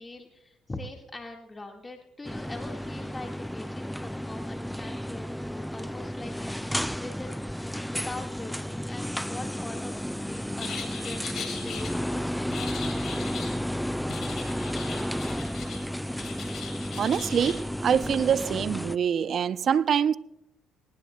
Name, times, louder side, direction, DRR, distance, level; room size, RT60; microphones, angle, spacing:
voice 1, 0.0-7.5 7.9-12.3, left 2 dB, 20° left, 1.8 m, -42 dB
sound 1, 2.2-19.0, equal, 5° left, 0.4 m, -32 dB
sound 2, 10.6-11.9 12.5-13.6 14.1-15.8 16.1-17.6, left 6 dB, 60° left, 3.6 m, -39 dB
voice 2, 17.0-20.2, right 8 dB, 55° right, 0.5 m, -25 dB
19.5 x 19.0 x 2.3 m
supercardioid pair, 70°, 0 cm